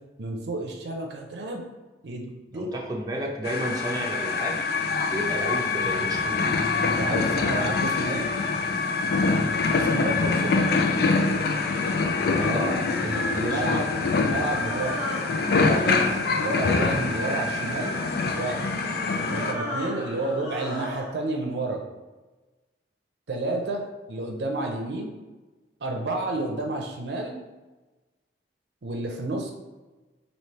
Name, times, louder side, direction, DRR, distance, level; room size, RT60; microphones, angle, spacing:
voice 1, 0.2-1.6 2.0-2.7 6.8-8.2 9.7-10.5 12.3-12.6 13.0-13.9 14.2-15.1 15.6-16.0 16.4-17.9 18.3-18.7 19.3-21.8 23.3-25.1 25.8-27.3 28.8-29.5, right 2 dB, 70° right, 2 dB, 0.6 m, -30 dB
voice 2, 2.5-4.6 5.1-6.6 10.3-10.4 12.4-13.8, right 1 dB, 20° right, -2 dB, 0.5 m, -32 dB
sound 1, 3.4-19.5, left 4 dB, 60° left, 0.4 m, -25 dB
sound 2, 11.2-21.1, left 1 dB, 40° left, 1.1 m, -36 dB
3.2 x 2.8 x 4.2 m, 1.2 s
head